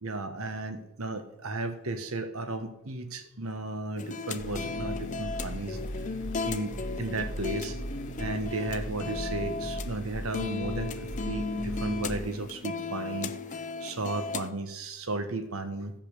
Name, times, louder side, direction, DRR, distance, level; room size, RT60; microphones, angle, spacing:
voice 1, 0.0-5.8 6.4-6.7 7.0-7.8 8.2-11.0 11.2-13.3 13.8-15.9, right 2 dB, 80° right, 8 dB, 1.4 m, -34 dB
sound 1, 4.0-14.5, left 4 dB, 35° left, 0.6 m, -36 dB
sound 2, 4.4-12.2, right 1 dB, 60° left, 1.6 m, -38 dB
14.5 x 5.6 x 6.8 m, 0.85 s
head